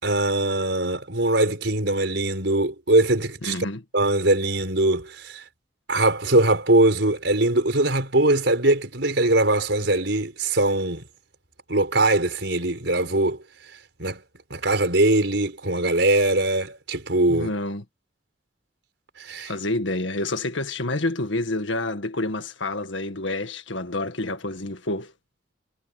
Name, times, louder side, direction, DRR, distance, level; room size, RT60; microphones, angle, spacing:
voice 1, 0.0-3.6 3.9-5.4 5.9-11.0 11.7-13.4 14.0-14.2 14.5-17.5 19.2-19.5, right 2 dB, 70° right, 5.1 m, -21 dB
voice 2, 3.4-3.8 17.3-17.8 19.4-25.1, left 2 dB, 85° left, 1.9 m, -28 dB
head